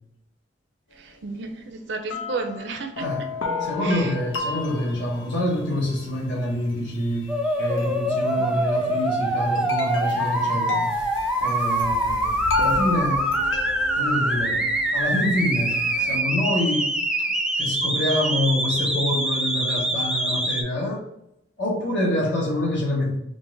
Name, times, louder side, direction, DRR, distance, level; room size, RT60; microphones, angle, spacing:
voice 1, 0.9-3.1 3.8-4.1 8.4-8.6, right 4 dB, 65° right, 4 dB, 0.5 m, -33 dB
sound 1, 1.4-1.5 2.1-16.2, left 3 dB, 90° left, 0.7 m, -34 dB
voice 2, 3.6-10.9 11.4-13.3 14.0-16.9 17.6-21.0 21.6-23.2, left 1 dB, 65° left, -3 dB, 1.3 m, -26 dB
sound 2, 7.3-20.6, right 1 dB, 5° right, 0.4 m, -24 dB
3.9 x 2.6 x 3.8 m, 0.80 s
head